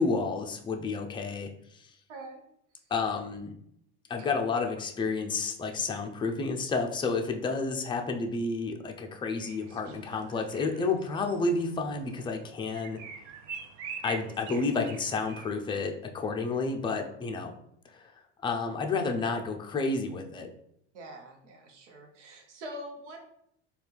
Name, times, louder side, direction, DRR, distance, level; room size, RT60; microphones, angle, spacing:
voice 1, 0.0-1.5 1.7-1.9 2.9-3.5 4.1-13.0 14.0-17.5 17.9-18.1 18.4-20.5, left 4 dB, 15° left, 3 dB, 0.5 m, -30 dB
voice 2, 2.1-2.4 2.8-2.9 20.9-23.2, right 1 dB, 85° right, 2 dB, 0.9 m, -44 dB
sound 1, 9.4-15.5, right 7 dB, 55° right, 0.6 m, -45 dB
4.1 x 2.3 x 3.3 m, 0.71 s
hypercardioid pair, 80°, 35 cm